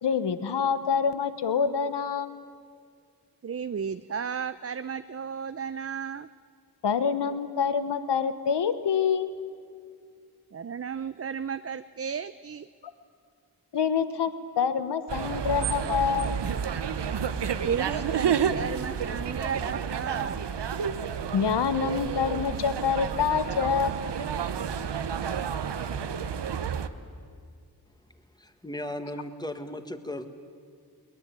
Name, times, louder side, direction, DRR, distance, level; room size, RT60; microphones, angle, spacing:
voice 1, 0.0-2.4 6.8-9.4 13.7-16.4 21.3-24.0, left 6 dB, 85° left, 12 dB, 1.0 m, -26 dB
voice 2, 3.4-6.3 10.5-12.7 17.6-20.4, right 7 dB, 35° right, 12 dB, 0.5 m, -34 dB
sound 1, 15.1-26.9, right 7 dB, 85° right, 1.0 m, -30 dB
voice 3, 28.1-30.3, left 1 dB, 10° left, 8 dB, 1.7 m, -37 dB
22.5 x 19.5 x 8.9 m, 2.2 s
cardioid pair, 55°, 41 cm